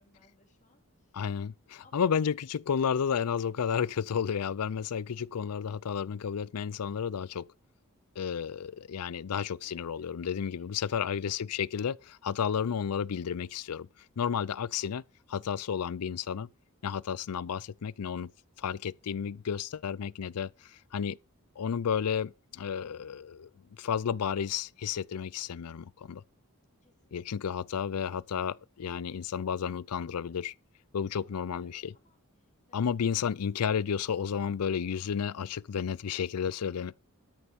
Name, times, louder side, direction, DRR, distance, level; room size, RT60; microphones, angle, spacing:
voice 1, 0.0-1.3 1.8-2.1 5.4-5.8 9.6-11.2 25.2-25.4 26.8-27.5 31.2-32.9, left 2 dB, 35° left, 2.9 m, -67 dB
voice 2, 1.1-7.5 8.2-13.9 14.2-15.0 15.3-16.5 16.8-18.3 18.6-21.2 21.6-23.5 23.8-26.2 27.1-30.5 30.9-31.9 32.7-36.9, left 7 dB, 90° left, 0.5 m, -32 dB
13.0 x 6.8 x 5.3 m
head